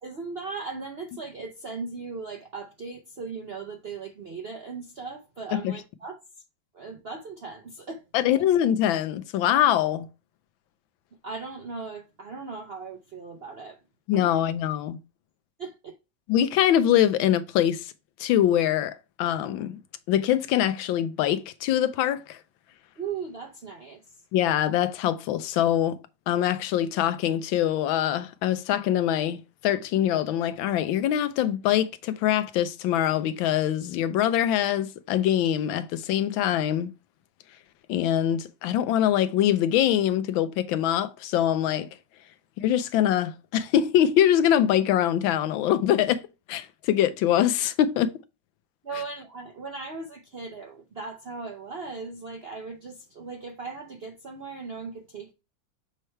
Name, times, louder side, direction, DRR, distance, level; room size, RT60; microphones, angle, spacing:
voice 1, 0.0-6.2 6.7-8.3 11.2-13.8 14.1-14.5 15.6-16.0 23.0-24.0 48.8-55.3, right 4 dB, 65° right, 0.6 m, -38 dB
voice 2, 8.1-10.1 14.1-15.0 16.3-17.9 18.2-19.8 20.1-22.4 24.3-26.0 26.3-36.9 37.9-41.9 42.6-46.2 46.5-48.2, left 11 dB, 85° left, 1.4 m, -23 dB
6.5 x 3.3 x 4.4 m
omnidirectional pair, 2.1 m